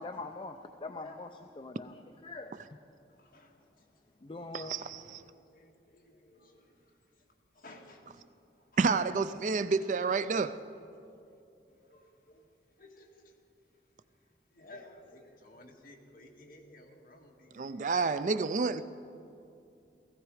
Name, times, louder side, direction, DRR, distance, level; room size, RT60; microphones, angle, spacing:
voice 1, 0.0-2.5 4.2-4.8, left 3 dB, 30° left, 6 dB, 0.5 m, -43 dB
voice 2, 3.2-3.6 4.6-7.0 7.5-8.0 8.6-8.8 9.4-9.5 9.8-10.5 11.7-12.5 12.8-13.3 14.5-17.9, left 1 dB, 55° left, -1 dB, 2.0 m, -56 dB
voice 3, 4.5-5.2 8.8-10.5 17.6-18.8, right 4 dB, 45° right, 13 dB, 0.4 m, -29 dB
17.0 x 16.0 x 4.9 m, 2.6 s
head